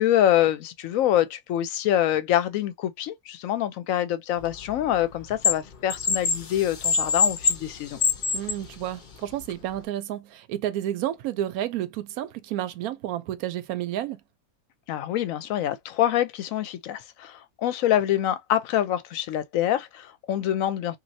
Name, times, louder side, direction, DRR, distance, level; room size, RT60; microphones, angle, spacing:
voice 1, 0.0-8.0 14.9-21.0, left 11 dB, 75° left, 1.0 m, -25 dB
sound 1, 4.4-5.5 5.9-8.7 9.4-9.5, left 5 dB, 50° left, 0.6 m, -24 dB
voice 2, 8.3-14.2, right 12 dB, 90° right, 1.1 m, -31 dB
3.1 x 2.6 x 2.6 m
omnidirectional pair, 1.5 m